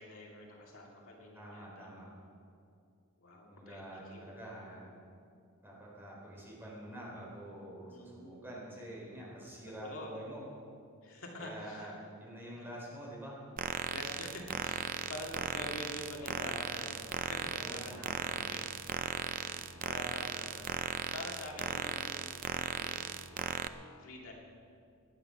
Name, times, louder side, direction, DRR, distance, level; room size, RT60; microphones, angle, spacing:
voice 1, 0.0-2.1 3.2-4.3 7.9-8.4 9.8-10.2 11.0-11.9 12.6-12.7 13.9-18.8 19.1-20.8 21.1-24.3, left 1 dB, 65° left, -1 dB, 2.4 m, -47 dB
voice 2, 1.3-2.0 3.4-4.9 5.6-10.4 11.4-13.4 17.5-18.5, right 1 dB, 10° right, -4 dB, 4.0 m, -47 dB
sound 1, 13.6-23.7, right 6 dB, 40° right, 0.5 m, -37 dB
18.5 x 10.5 x 5.7 m, 2.4 s
head